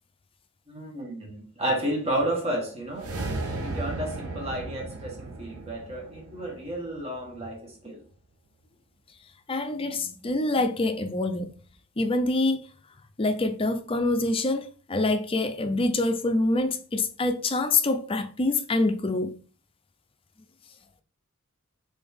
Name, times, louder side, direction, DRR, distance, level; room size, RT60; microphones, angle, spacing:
voice 1, 0.7-3.1 3.6-8.0, right 1 dB, 30° right, 1.3 m, -31 dB
sound 1, 2.9-7.3, right 2 dB, 80° right, 0.8 m, -35 dB
voice 2, 9.5-11.5 12.0-12.6 13.2-19.3, left 2 dB, 25° left, 0.5 m, -25 dB
3.7 x 3.4 x 3.5 m
head